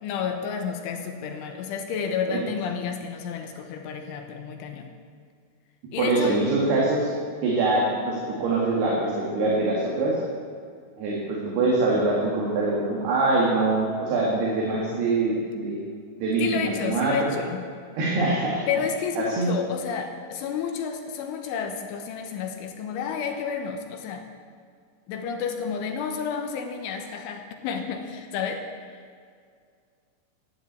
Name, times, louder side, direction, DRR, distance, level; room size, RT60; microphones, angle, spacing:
voice 1, 0.0-4.9 5.9-6.5 16.4-17.7 18.7-24.3 25.1-28.6 28.9-29.0, left 6 dB, 80° left, 5 dB, 3.4 m, -30 dB
voice 2, 6.0-7.1 7.4-10.2 11.0-15.8 16.2-17.1 18.0-18.6 19.2-19.5, right 2 dB, 60° right, -4 dB, 3.8 m, -24 dB
14.5 x 9.8 x 8.3 m, 2.1 s
omnidirectional pair, 5.7 m